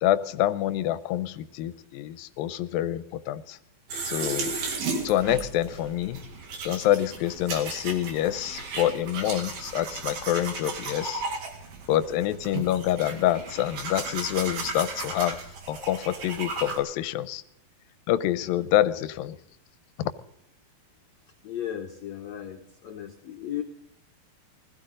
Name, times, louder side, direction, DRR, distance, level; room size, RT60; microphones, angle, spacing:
voice 1, 0.0-3.6 4.0-4.7 5.0-6.2 6.7-11.2 11.9-15.4 15.7-17.4 18.1-19.4, left 13 dB, 80° left, 13 dB, 2.4 m, -27 dB
sound 1, 3.9-16.8, right 4 dB, 75° right, 4.0 m, -35 dB
voice 2, 21.4-23.6, left 10 dB, 65° left, 2 dB, 1.9 m, -36 dB
20.5 x 14.5 x 3.8 m, 0.76 s
omnidirectional pair, 4.2 m